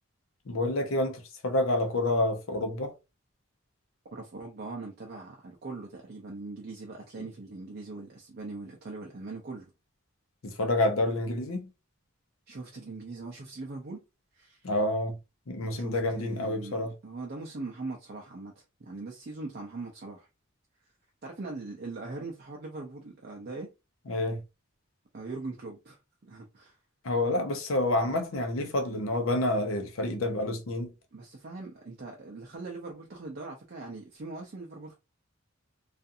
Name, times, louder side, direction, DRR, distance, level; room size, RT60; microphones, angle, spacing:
voice 1, 0.5-2.9 10.4-11.7 14.6-15.2 15.5-16.9 24.1-24.4 27.0-30.9, left 1 dB, 80° left, 0.7 m, -28 dB
voice 2, 4.1-9.7 12.5-14.0 14.3-14.6 15.7-18.5 18.8-20.3 21.2-23.7 25.1-26.0 26.2-26.7 31.1-34.9, right 3 dB, 50° right, 0.5 m, -41 dB
2.5 x 2.4 x 2.6 m
head